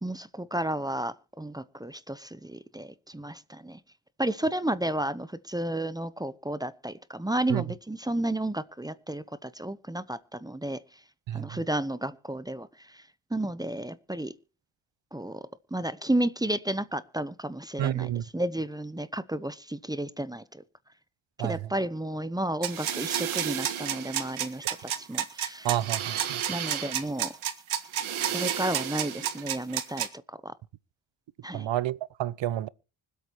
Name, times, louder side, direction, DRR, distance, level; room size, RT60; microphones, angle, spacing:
voice 1, 0.0-3.8 4.2-10.8 11.3-12.7 12.9-13.0 13.3-14.3 15.1-15.4 15.7-20.6 21.4-24.6 25.0-25.7 26.5-27.3 28.2-30.1 30.4-30.5 31.4-31.7, right 1 dB, 10° right, 0.8 m, -32 dB
voice 2, 17.8-18.2 21.4-21.6 25.6-26.4 31.5-32.7, right 12 dB, 65° right, 0.7 m, -29 dB
sound 1, 22.6-30.1, right 10 dB, 85° right, 1.7 m, -30 dB
25.0 x 8.4 x 3.0 m
cardioid pair, 100°, 47 cm